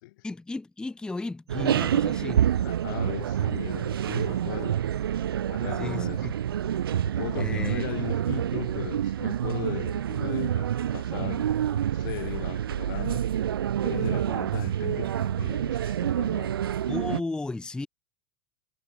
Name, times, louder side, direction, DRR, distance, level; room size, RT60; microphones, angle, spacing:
voice 1, 0.2-2.4 5.8-6.3 7.4-7.9 16.9-17.9, left 2 dB, 5° left, 0.4 m, -34 dB
sound 1, 1.5-7.1, right 6 dB, 25° right, 2.7 m, -55 dB
sound 2, 1.5-17.2, right 10 dB, 80° right, 0.4 m, -27 dB
voice 2, 2.6-4.8 5.5-6.3 7.0-13.3 13.8-16.6, left 20 dB, 60° left, 0.7 m, -37 dB
sound 3, 3.3-16.4, right 20 dB, 60° right, 2.6 m, -57 dB
figure-of-eight pair, 80°, 12 cm